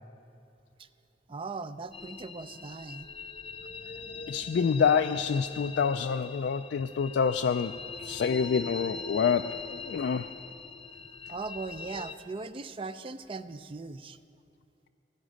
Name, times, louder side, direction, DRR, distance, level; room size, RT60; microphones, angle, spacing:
voice 1, 1.3-3.1 11.3-14.2, right 3 dB, 30° right, 13 dB, 0.4 m, -39 dB
sound 1, 1.9-12.2, left 4 dB, 30° left, 0.7 m, -42 dB
voice 2, 4.3-10.3, left 6 dB, 70° left, 7 dB, 0.3 m, -27 dB
16.5 x 10.0 x 6.4 m, 2.6 s
head